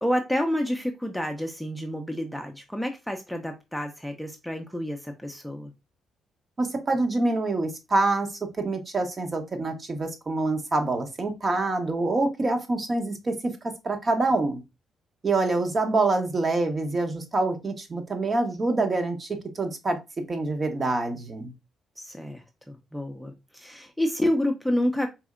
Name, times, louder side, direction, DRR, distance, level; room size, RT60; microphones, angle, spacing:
voice 1, 0.0-5.7 22.0-25.1, left 1 dB, ahead, 3 dB, 0.6 m, -29 dB
voice 2, 6.6-8.3 8.6-14.6 15.2-20.0 20.3-21.5, right 2 dB, 35° right, 5 dB, 0.9 m, -26 dB
4.2 x 2.7 x 2.4 m, 0.24 s
cardioid pair, 90°, 0 cm